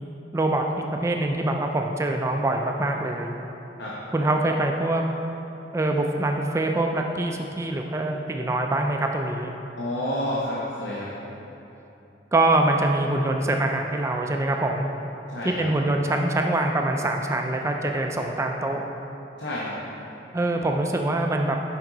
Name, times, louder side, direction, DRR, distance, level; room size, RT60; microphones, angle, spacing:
voice 1, 0.3-3.4 4.1-5.0 5.7-9.5 12.3-14.9 15.4-18.8 20.3-21.6, right 2 dB, 15° right, 2 dB, 0.3 m, -24 dB
voice 2, 9.8-11.1 15.3-15.6 19.4-19.7, left 1 dB, 75° left, -7 dB, 0.9 m, -29 dB
7.3 x 5.4 x 3.8 m, 3.0 s
head